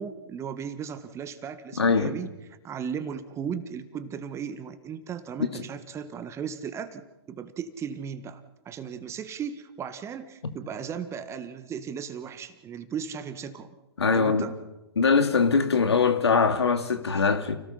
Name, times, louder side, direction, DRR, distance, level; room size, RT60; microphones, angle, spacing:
voice 1, 0.0-2.3 2.6-13.8 14.1-14.6, right 7 dB, 20° right, 1.7 m, -36 dB
voice 2, 1.8-2.2 5.5-5.6 14.0-14.4 15.0-17.6, left 5 dB, 75° left, 2.5 m, -22 dB
29.5 x 18.5 x 5.7 m
figure-of-eight pair, 120°, 14 cm